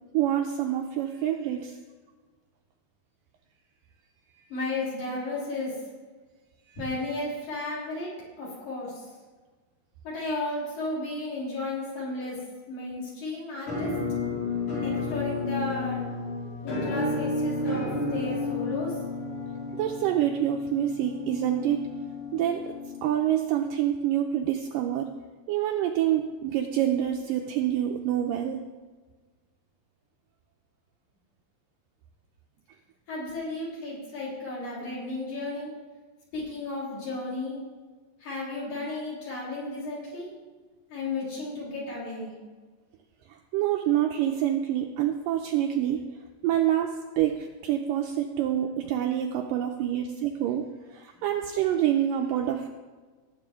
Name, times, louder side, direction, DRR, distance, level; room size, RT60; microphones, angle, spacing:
voice 1, 0.1-1.8 4.4-4.5 19.8-21.8 22.3-22.8 23.0-25.1 25.5-28.6 43.3-46.1 46.4-52.7, right 11 dB, 90° right, 3 dB, 1.9 m, -27 dB
voice 2, 4.5-5.8 6.8-8.1 8.4-9.0 10.0-12.4 12.7-13.9 14.8-16.0 16.6-18.9 33.1-35.7 36.3-37.6 38.2-40.3 40.9-42.3, left 2 dB, 50° left, -6 dB, 4.6 m, -33 dB
Musical instrument, 13.7-23.5, left 3 dB, 75° left, 5.5 m, -32 dB
18.0 x 7.4 x 3.6 m, 1.3 s
omnidirectional pair, 4.5 m